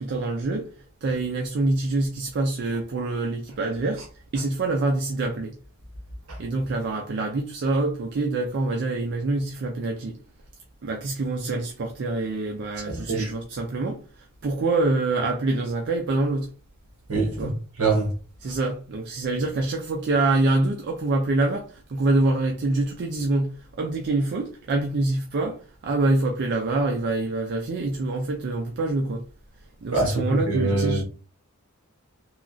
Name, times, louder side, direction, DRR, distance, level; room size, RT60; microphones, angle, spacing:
voice 1, 0.0-5.6 6.4-10.2 10.8-16.5 17.4-17.6 18.4-29.2 29.8-31.0, right 2 dB, 50° right, 0.4 m, -26 dB
voice 2, 12.9-13.3 17.1-17.5 17.8-18.1 29.9-31.0, right 3 dB, 65° right, 1.0 m, -24 dB
3.1 x 2.3 x 2.5 m
head